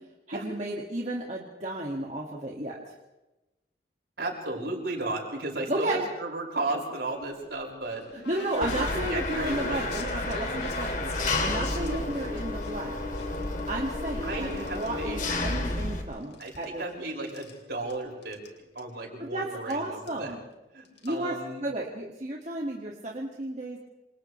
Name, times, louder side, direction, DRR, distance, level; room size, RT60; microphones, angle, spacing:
voice 1, 0.3-2.9 5.7-6.1 8.1-11.1 11.4-13.0 13.7-16.8 19.2-20.4 21.0-23.8, right 1 dB, 40° right, -2 dB, 2.2 m, -33 dB
voice 2, 4.2-8.1 8.6-9.9 14.2-15.2 16.4-18.4 18.7-20.3 20.7-21.6, right 2 dB, 65° right, -1 dB, 6.3 m, -34 dB
sound 1, 7.2-12.7 13.1-14.9 15.2-16.0 16.2-17.6 17.9-18.0 18.2-18.5 18.8-18.9 19.7-19.8 20.1-20.3 20.8-21.1, left 3 dB, 75° left, 3.8 m, -43 dB
Engine, 8.6-16.0, left 2 dB, 45° left, 2.6 m, -31 dB
28.5 x 27.5 x 3.4 m, 1.0 s
head